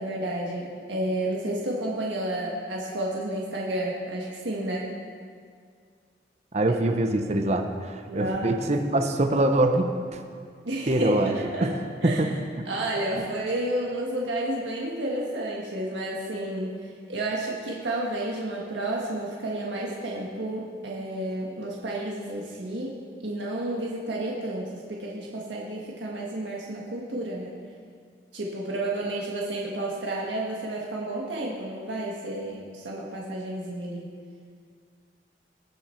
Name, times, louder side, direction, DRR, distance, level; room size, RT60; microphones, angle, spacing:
voice 1, 0.0-4.9 8.1-8.6 10.6-11.7 12.0-12.2 12.6-22.9 23.2-27.5 28.3-34.1, right 1 dB, 90° right, -3 dB, 1.5 m, -31 dB
voice 2, 6.5-10.2 10.9-11.3 11.6-11.7 12.0-12.3 13.2-13.3, right 1 dB, 40° right, 6 dB, 0.7 m, -24 dB
20.0 x 7.4 x 4.4 m, 2.1 s
head